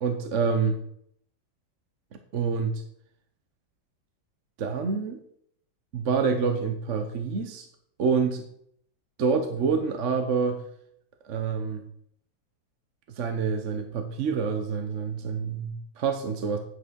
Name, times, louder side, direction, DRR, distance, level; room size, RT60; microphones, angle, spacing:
voice 1, 0.0-0.7 2.3-2.8 4.6-5.2 5.9-7.7 8.0-8.4 9.2-10.6 11.2-11.8 13.2-16.6, right 5 dB, 50° right, 6 dB, 1.0 m, -27 dB
9.6 x 6.0 x 6.3 m, 0.68 s
omnidirectional pair, 2.1 m